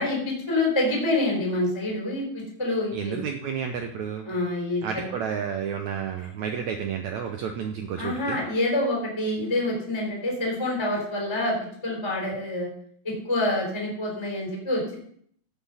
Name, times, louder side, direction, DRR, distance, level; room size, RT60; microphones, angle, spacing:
voice 1, 0.0-3.2 4.3-5.1 8.0-11.5 11.8-12.7 13.0-14.9, left 1 dB, 5° left, -2 dB, 3.8 m, -27 dB
voice 2, 2.9-4.3 4.8-8.4, right 7 dB, 70° right, 4 dB, 1.9 m, -31 dB
15.5 x 6.2 x 5.7 m, 0.62 s
omnidirectional pair, 4.1 m